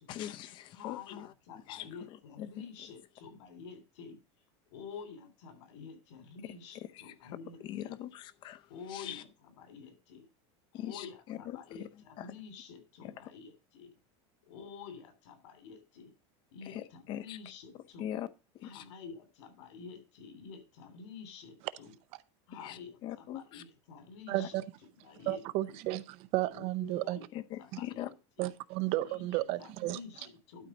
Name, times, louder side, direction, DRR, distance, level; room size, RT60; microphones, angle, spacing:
voice 1, 0.1-1.3 1.7-1.8 2.6-2.7 7.6-8.6 8.9-9.2 10.7-11.6 12.2-12.3 16.7-17.4 18.0-18.3 18.6-18.8 22.6-23.6 27.5-28.1, left 12 dB, 35° left, 0.6 m, -41 dB
voice 2, 0.7-4.2 4.7-8.0 8.7-10.3 10.7-14.0 14.4-16.1 16.5-18.1 18.6-21.9 22.5-24.6 25.0-25.4 25.7-25.8 26.5-27.2 27.6-28.1 28.4-28.5 29.0-30.7, left 6 dB, 80° left, 3.1 m, -49 dB
voice 3, 24.3-24.6 25.3-27.2 27.7-27.8 28.4-30.0, right 17 dB, 45° right, 0.6 m, -33 dB
12.0 x 4.1 x 6.0 m
supercardioid pair, 175°, 15 cm